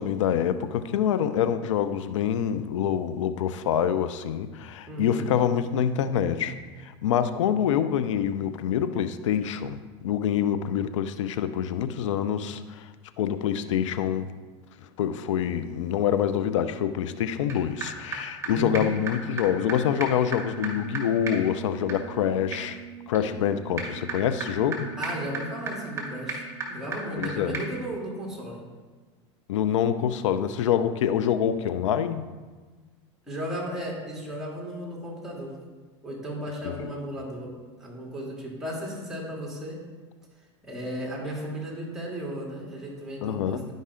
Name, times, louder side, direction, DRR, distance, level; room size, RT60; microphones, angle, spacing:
voice 1, 0.0-9.8 10.0-12.9 13.2-14.3 15.0-22.8 23.1-24.9 27.2-27.6 29.5-32.3 36.8-36.9 43.2-43.6, left 9 dB, 80° left, 12 dB, 0.5 m, -26 dB
voice 2, 4.9-5.3 18.5-18.9 25.0-28.6 33.3-35.6 36.0-37.5 37.8-39.8 40.6-43.7, equal, 5° right, -3 dB, 2.9 m, -35 dB
sound 1, 17.5-17.6 17.8-17.9 18.1-18.2 18.4-18.5 18.7-18.8 19.1-19.2 19.4-19.5 19.7-19.8 20.0-27.3 27.5-27.6, right 4 dB, 20° right, 2.0 m, -36 dB
11.5 x 5.3 x 3.7 m, 1.3 s
hypercardioid pair, 100°, 15 cm